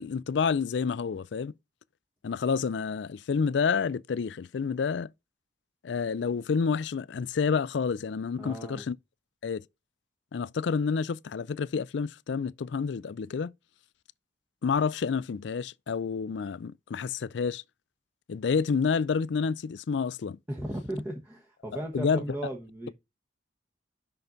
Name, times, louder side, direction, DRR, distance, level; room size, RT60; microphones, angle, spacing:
voice 1, 0.0-1.5 2.2-5.1 5.8-9.0 9.4-9.6 10.3-13.5 14.6-17.6 18.3-20.4 21.9-22.2, left 5 dB, 70° left, 0.4 m, -29 dB
voice 2, 8.4-8.8 20.5-22.9, right 1 dB, 10° right, 1.1 m, -36 dB
5.9 x 5.5 x 3.8 m
head